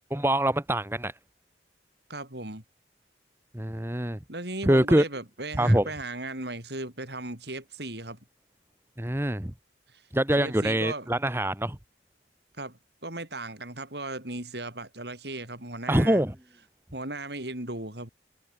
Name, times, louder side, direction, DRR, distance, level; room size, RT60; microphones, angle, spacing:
voice 1, 0.1-1.1 3.5-4.2 4.6-5.0 5.6-5.9 9.0-9.5 10.1-11.8 15.9-16.3, right 1 dB, 15° right, 1.3 m, -24 dB
voice 2, 2.1-2.6 4.3-8.2 9.9-10.1 10.4-11.1 12.6-16.2 16.9-18.1, right 2 dB, 65° right, 6.6 m, -37 dB
head